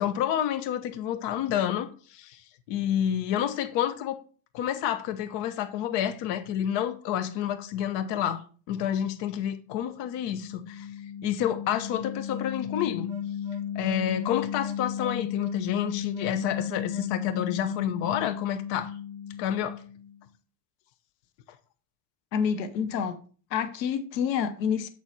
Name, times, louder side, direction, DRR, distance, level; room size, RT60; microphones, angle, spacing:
voice 1, 0.0-2.4 2.7-4.2 4.5-8.4 8.7-10.9 11.2-13.1 13.7-18.9 19.4-19.8, left 10 dB, 55° left, 1.0 m, -29 dB
sound 1, 10.0-20.1, left 8 dB, 5° right, 2.1 m, -35 dB
voice 2, 22.3-23.2 23.5-24.9, left 7 dB, 85° left, 1.0 m, -28 dB
8.0 x 4.4 x 4.1 m
hypercardioid pair, 95°, 50 cm